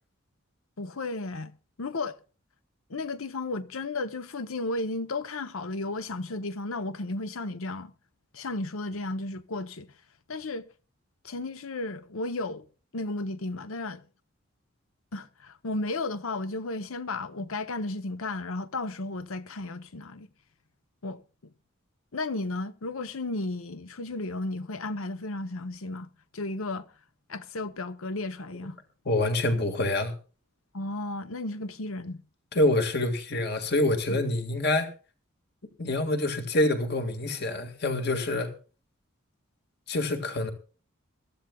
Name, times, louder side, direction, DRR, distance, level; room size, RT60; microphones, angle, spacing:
voice 1, 0.8-1.5 1.8-2.2 2.9-7.9 8.3-9.9 10.3-10.6 11.2-12.7 12.9-14.0 15.1-20.3 21.0-21.2 22.1-26.9 27.3-28.8 30.7-32.2 34.1-34.2, left 2 dB, 80° left, 0.9 m, -34 dB
voice 2, 29.1-30.1 32.5-34.9 35.8-38.5 39.9-40.5, left 1 dB, 50° left, 1.9 m, -26 dB
22.5 x 14.0 x 2.3 m
head